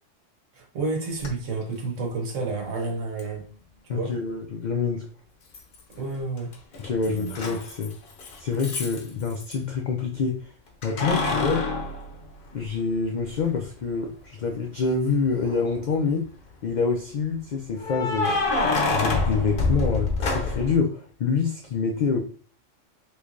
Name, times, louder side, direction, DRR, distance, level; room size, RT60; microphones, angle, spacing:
voice 1, 0.5-3.4 3.9-4.1 6.0-6.5 7.1-7.5, right 3 dB, 75° right, 1 dB, 1.2 m, -30 dB
Keys jangling, 1.2-1.3 3.2-3.3 5.5-6.1 6.4-9.6 10.8-12.9 13.4-13.5 15.3-15.9 17.8-20.8, left 3 dB, 50° left, 0.7 m, -27 dB
voice 2, 3.9-5.1 6.8-7.9 8.4-10.5 10.8-11.7 12.5-16.3 16.6-18.4 18.9-22.2, left 5 dB, 75° left, 2 dB, 0.4 m, -26 dB
3.2 x 3.1 x 2.4 m, 0.42 s
omnidirectional pair, 1.3 m